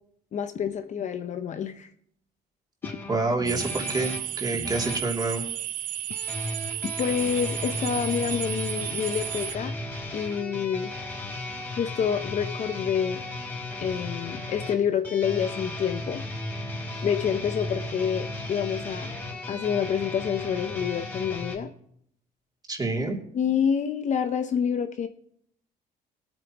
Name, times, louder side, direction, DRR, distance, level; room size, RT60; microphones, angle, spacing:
voice 1, 0.3-1.9 6.8-9.7 10.1-10.9 11.8-13.2 13.8-16.2 17.0-19.1 19.5-21.7 23.3-25.1, left 7 dB, 45° left, 8 dB, 0.8 m, -27 dB
sound 1, 2.8-5.1 6.1-21.6, left 2 dB, 15° left, 3.7 m, -35 dB
voice 2, 3.1-5.4 22.7-23.2, right 3 dB, 25° right, 0 dB, 2.9 m, -27 dB
sound 2, 3.5-9.6, right 12 dB, 55° right, 0.4 m, -33 dB
22.0 x 9.1 x 3.0 m, 0.69 s
cardioid pair, 110°, 17 cm